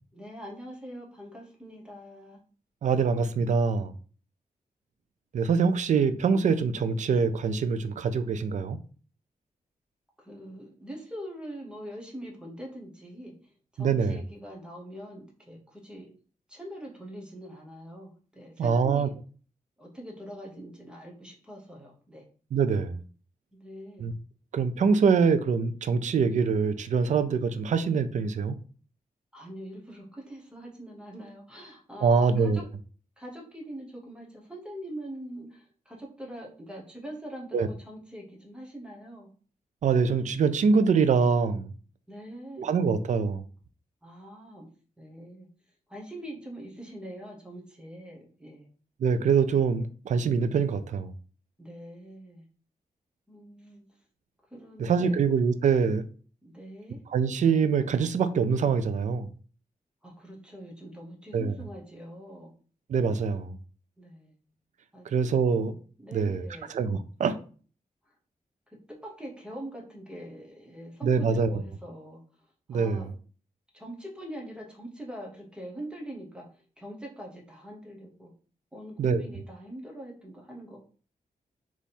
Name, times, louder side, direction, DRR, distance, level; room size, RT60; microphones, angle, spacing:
voice 1, 0.1-2.4 10.2-16.1 16.5-19.2 19.8-22.3 23.5-24.1 29.3-32.6 33.2-39.3 42.1-42.7 44.0-44.7 45.0-45.5 45.9-48.7 51.6-52.4 53.3-53.8 54.5-55.2 56.4-57.0 60.0-62.5 64.0-64.3 64.9-65.1 66.0-66.7 69.0-72.2 72.7-73.1 73.7-78.3 78.7-80.8, right 1 dB, 5° right, 1.0 m, -43 dB
voice 2, 2.8-3.9 5.3-8.8 13.8-14.2 18.6-19.1 22.5-23.0 24.0-24.1 24.5-28.6 32.0-32.6 37.5-37.7 39.8-41.7 42.6-43.4 49.0-51.1 54.8-56.1 57.1-59.3 61.3-61.5 62.9-63.6 65.1-65.8 66.1-67.4 71.0-71.6 72.7-73.0 79.0-79.2, right 5 dB, 55° right, 0.4 m, -24 dB
3.5 x 3.0 x 4.1 m
wide cardioid pair, 180°, 15 cm